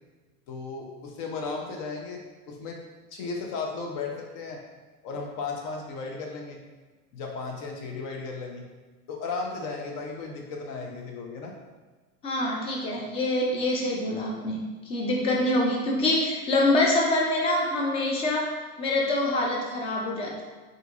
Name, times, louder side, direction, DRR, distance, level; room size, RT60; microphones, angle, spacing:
voice 1, 0.5-2.8 3.1-4.6 5.0-6.7 7.1-8.7 9.1-11.6, left 4 dB, 45° left, 1 dB, 0.8 m, -35 dB
voice 2, 12.2-18.5 18.8-20.4, left 1 dB, 15° left, -1 dB, 0.3 m, -25 dB
2.8 x 2.6 x 3.6 m, 1.3 s
hypercardioid pair, 110°, 45 cm